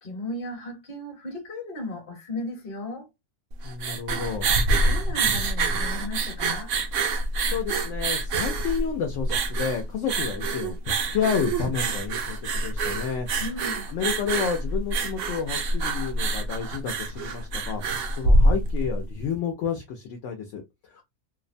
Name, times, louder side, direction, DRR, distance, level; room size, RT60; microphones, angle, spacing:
voice 1, 0.0-3.1 4.6-6.7 13.4-13.9 21.0-21.1, left 2 dB, 40° left, 1.0 m, -36 dB
sound 1, 3.5-19.0, right 2 dB, 65° right, 0.8 m, -26 dB
voice 2, 3.6-4.5 7.4-13.4 13.9-21.0, left 7 dB, 65° left, 0.7 m, -30 dB
2.6 x 2.0 x 2.5 m
omnidirectional pair, 1.6 m